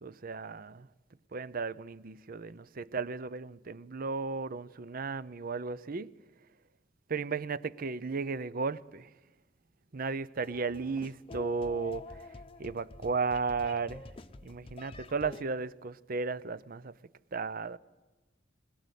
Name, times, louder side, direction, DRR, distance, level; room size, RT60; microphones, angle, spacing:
voice 1, 0.0-0.9 1.3-6.1 7.1-9.1 9.9-14.1 14.4-16.9 17.3-17.8, right 4 dB, 50° right, 0.7 m, -35 dB
sound 1, 10.4-15.4, left 2 dB, 30° left, 0.8 m, -47 dB
22.0 x 21.5 x 8.3 m
head